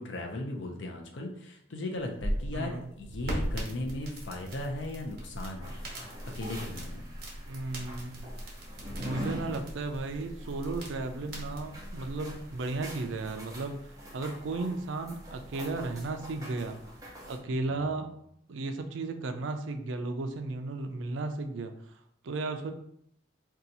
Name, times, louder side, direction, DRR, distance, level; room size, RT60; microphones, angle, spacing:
voice 1, 0.0-5.7 6.3-7.0 17.5-17.6, left 1 dB, 70° left, 2 dB, 0.6 m, -37 dB
sound 1, 2.0-12.6, equal, 55° right, 1.0 m, -39 dB
voice 2, 2.5-2.9 7.5-8.3 9.0-16.8 17.3-18.1 18.5-22.7, right 3 dB, 85° right, 6 dB, 0.4 m, -35 dB
sound 2, 5.6-17.4, equal, 20° right, 0.7 m, -45 dB
2.8 x 2.3 x 3.9 m, 0.73 s
head